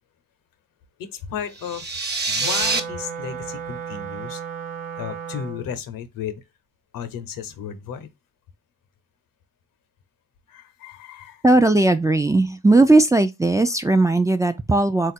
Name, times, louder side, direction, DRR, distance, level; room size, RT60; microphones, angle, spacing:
voice 1, 1.0-4.4 5.0-6.4 6.9-8.1 10.5-11.4, left 8 dB, 75° left, 0.9 m, -34 dB
sound 1, 1.6-2.8, right 3 dB, 30° right, 0.9 m, -25 dB
Wind instrument woodwind instrument, 2.4-5.8, right 7 dB, 70° right, 0.9 m, -34 dB
voice 2, 11.4-15.1, right 2 dB, 10° right, 0.4 m, -17 dB
3.7 x 2.5 x 4.1 m
cardioid pair, 80°, 34 cm